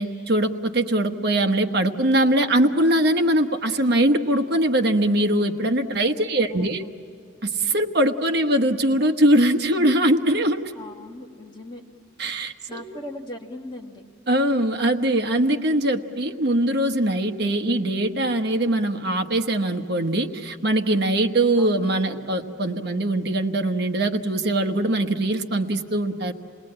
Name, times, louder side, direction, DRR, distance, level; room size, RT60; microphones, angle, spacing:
voice 1, 0.0-6.8 7.4-10.6 12.2-12.8 14.3-26.3, right 1 dB, 60° right, 6 dB, 1.2 m, -22 dB
voice 2, 6.1-7.0 10.7-11.8 12.7-14.0 21.6-22.2, left 1 dB, 25° left, 1 dB, 1.6 m, -40 dB
28.5 x 20.5 x 8.8 m, 2.6 s
head